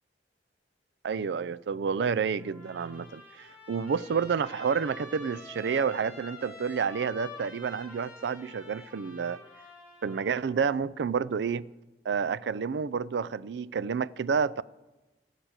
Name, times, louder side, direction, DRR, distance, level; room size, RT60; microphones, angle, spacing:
voice 1, 1.0-9.4 10.0-11.7 12.1-14.6, right 6 dB, 75° right, 0.4 m, -29 dB
Trumpet, 2.4-10.6, left 2 dB, 10° right, 5.7 m, -48 dB
14.5 x 6.6 x 8.8 m
head